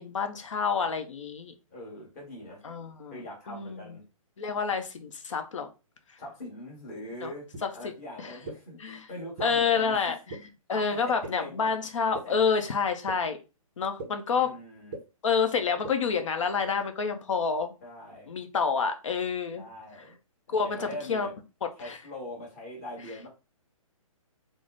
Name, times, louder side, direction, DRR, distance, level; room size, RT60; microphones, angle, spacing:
voice 1, 0.0-1.5 2.6-3.2 3.5-3.8 4.4-5.7 7.2-7.3 7.6-7.7 8.2-8.3 8.8-9.0 9.4-10.4 10.7-13.4 13.8-14.5 15.2-17.7 18.3-19.6 20.5-21.3 21.8-22.0, left 5 dB, 60° left, 6 dB, 0.7 m, -28 dB
voice 2, 1.7-2.6 3.1-4.0 6.2-7.5 7.7-10.1 10.7-11.8 12.1-12.4 14.3-15.0 17.8-18.3 19.5-20.2 20.5-21.3 21.8-23.3, left 1 dB, 30° left, -3 dB, 1.5 m, -42 dB
sound 1, 7.5-7.6 8.4-8.5 9.4-9.5 10.3-10.4 11.2-11.3 12.1-12.2 13.1-13.2 14.0-14.1 14.9-15.0 15.8-15.9, right 3 dB, 15° right, 0.6 m, -36 dB
3.7 x 2.1 x 3.7 m, 0.29 s
hypercardioid pair, 175°, 18 cm